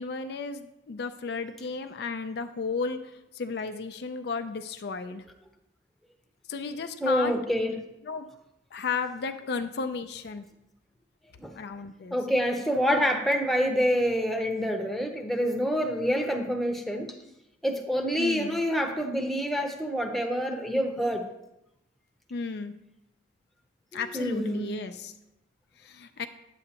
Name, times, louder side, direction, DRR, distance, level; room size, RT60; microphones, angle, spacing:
voice 1, 0.0-5.2 6.5-7.4 8.0-8.3 8.7-10.5 11.6-12.2 18.2-18.6 22.3-22.8 23.9-25.1 25.8-26.3, left 4 dB, 65° left, 8 dB, 0.4 m, -34 dB
voice 2, 7.0-7.8 11.4-11.5 12.1-17.2 17.6-21.3 23.9-24.8, equal, ahead, 2 dB, 0.8 m, -27 dB
9.2 x 7.8 x 2.9 m, 0.88 s
head